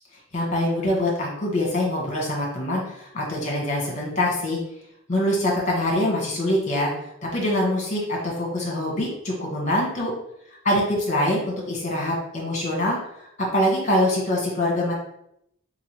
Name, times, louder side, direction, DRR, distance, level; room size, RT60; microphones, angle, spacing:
voice 1, 0.3-4.6 5.1-6.9 7.3-10.1 10.6-13.0 13.4-14.9, left 1 dB, 35° left, -2 dB, 1.4 m, -24 dB
4.2 x 3.8 x 3.1 m, 0.75 s
head